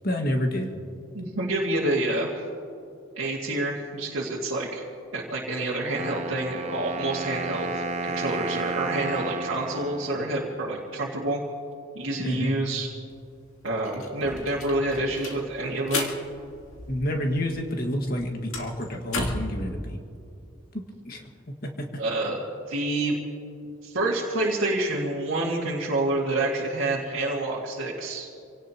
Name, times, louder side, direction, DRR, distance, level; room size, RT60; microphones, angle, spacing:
voice 1, 0.0-0.7 12.2-12.5 16.9-20.0 20.7-22.0, equal, 45° left, 2 dB, 1.8 m, -29 dB
voice 2, 1.1-2.4 3.2-4.9 5.1-11.4 11.9-12.9 13.6-16.2 22.0-22.4 22.7-23.1 23.8-28.3, right 2 dB, 70° right, -5 dB, 2.0 m, -28 dB
Wind instrument woodwind instrument, 5.9-10.9, right 3 dB, 30° right, 0.7 m, -33 dB
sound 1, 13.1-13.2 13.5-17.4 17.7-19.6, left 2 dB, 85° left, 2.2 m, -34 dB
27.0 x 18.0 x 3.0 m, 2.5 s
head